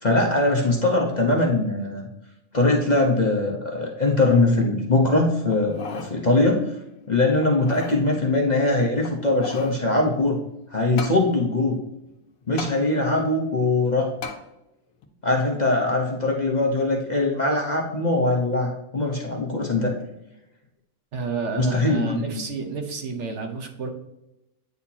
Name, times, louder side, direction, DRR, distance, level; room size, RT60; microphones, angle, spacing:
voice 1, 0.0-2.1 2.5-6.7 7.1-10.4 10.7-11.8 12.5-14.1 15.2-19.9 21.6-22.2, left 2 dB, 35° left, -1 dB, 0.8 m, -21 dB
sound 1, 5.5-6.1 6.6-6.7 7.4-8.0 9.0-9.8 11.0-11.2 12.6-12.8 14.2-14.4 15.0-15.1, left 4 dB, 70° left, 1.3 m, -35 dB
voice 2, 21.1-23.9, right 5 dB, 55° right, 4 dB, 1.1 m, -30 dB
9.3 x 4.3 x 2.8 m, 0.89 s
omnidirectional pair, 1.5 m